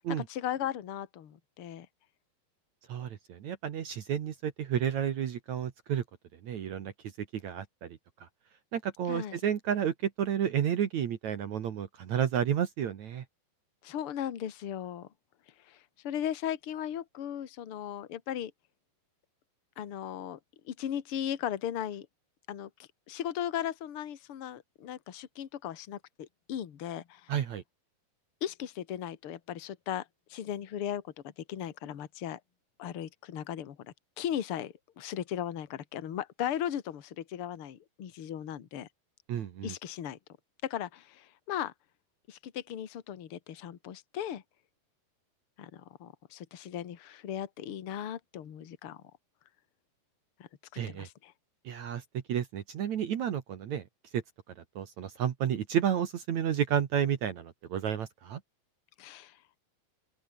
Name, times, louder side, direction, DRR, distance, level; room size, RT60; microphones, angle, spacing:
voice 1, 0.1-1.9 9.1-9.4 13.8-15.1 15.7-18.5 19.8-20.4 20.7-22.1 22.5-22.7 23.1-27.3 28.4-32.4 32.8-38.9 39.6-40.2 40.6-41.7 42.3-44.4 45.6-49.0 50.4-50.5 50.9-51.3 59.0-59.4, left 10 dB, 45° left, 1.9 m, -37 dB
voice 2, 2.9-6.0 6.4-6.9 7.3-8.0 8.7-13.2 27.3-27.6 39.3-39.7 50.8-51.1 51.7-52.0 52.3-53.8 54.1-54.2 54.8-58.4, right 9 dB, 60° right, 2.2 m, -31 dB
open air
omnidirectional pair, 4.8 m